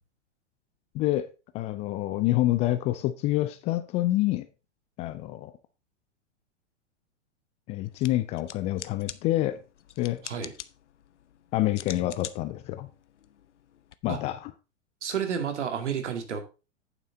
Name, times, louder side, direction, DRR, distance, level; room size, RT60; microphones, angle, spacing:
voice 1, 0.9-1.3 1.5-4.5 5.0-5.5 7.7-9.6 10.0-10.2 11.5-12.9 14.0-14.5, left 15 dB, 20° left, 0.4 m, -27 dB
sound 1, 7.8-13.9, left 10 dB, 70° left, 0.8 m, -45 dB
voice 2, 15.0-16.4, right 7 dB, 70° right, 2.3 m, -30 dB
8.9 x 7.6 x 3.8 m
figure-of-eight pair, 105°, 36 cm